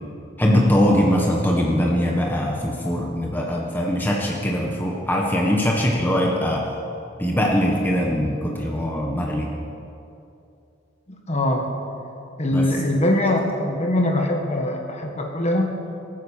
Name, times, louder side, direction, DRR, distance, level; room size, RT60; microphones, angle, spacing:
voice 1, 0.4-6.7 7.2-9.5 12.5-12.7, equal, 10° left, -1 dB, 1.3 m, -21 dB
voice 2, 11.3-11.7 12.4-15.7, left 1 dB, 35° left, 2 dB, 1.7 m, -22 dB
18.5 x 9.6 x 7.3 m, 2.7 s
head